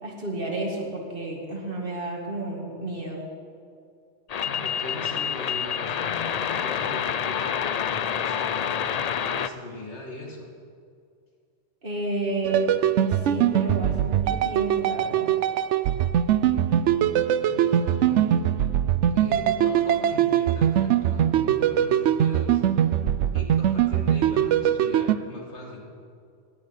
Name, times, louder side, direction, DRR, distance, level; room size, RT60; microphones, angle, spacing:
voice 1, 0.0-3.2 11.8-15.4, right 2 dB, 50° right, -1 dB, 2.6 m, -31 dB
sound 1, 4.3-9.5, left 8 dB, 60° left, 0.4 m, -28 dB
voice 2, 4.4-10.5 17.4-18.4 19.1-22.6 23.3-25.9, left 1 dB, 75° left, -1 dB, 2.5 m, -40 dB
sound 2, 12.4-25.1, right 10 dB, 85° right, 0.9 m, -22 dB
16.5 x 6.6 x 9.8 m, 2.3 s
omnidirectional pair, 1.2 m